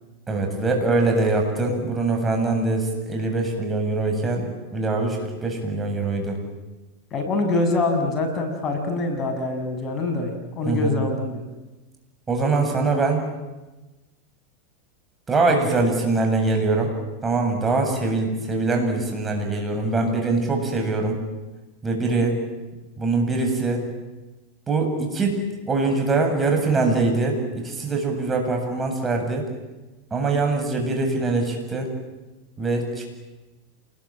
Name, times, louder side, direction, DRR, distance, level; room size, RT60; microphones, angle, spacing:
voice 1, 0.3-6.4 10.6-11.0 12.3-13.2 15.3-16.9 17.2-21.2 21.8-22.4 23.0-23.8 24.7-25.4 25.7-29.5 30.1-31.9 32.6-33.1, right 3 dB, 20° right, 3 dB, 8.0 m, -23 dB
voice 2, 7.1-11.5, left 2 dB, 35° left, 5 dB, 7.4 m, -24 dB
28.0 x 21.5 x 9.0 m, 1.1 s
hypercardioid pair, 110°, 0 cm